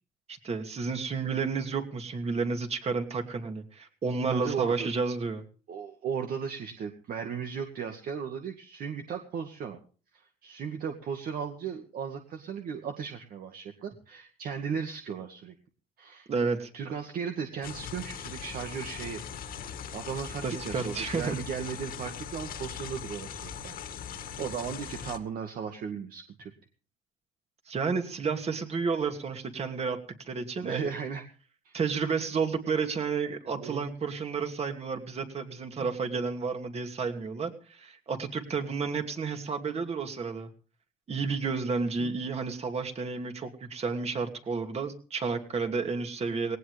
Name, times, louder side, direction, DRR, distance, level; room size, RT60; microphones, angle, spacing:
voice 1, 0.3-5.4 16.3-16.7 20.4-21.4 27.7-30.0 30.3-30.9 31.7-40.5 41.1-46.6, right 5 dB, 40° right, 5 dB, 2.7 m, -31 dB
voice 2, 4.3-4.9 5.7-9.8 10.1-15.5 16.0-16.3 16.7-19.2 19.9-23.8 24.4-26.5 30.6-31.2 31.6-31.8 33.6-33.9 35.8-35.9 42.0-42.1, right 7 dB, 60° right, 4 dB, 2.0 m, -36 dB
sound 1, 17.6-25.2, left 8 dB, 60° left, 2.1 m, -40 dB
19.0 x 18.0 x 3.5 m, 0.39 s
cardioid pair, 110°, 17 cm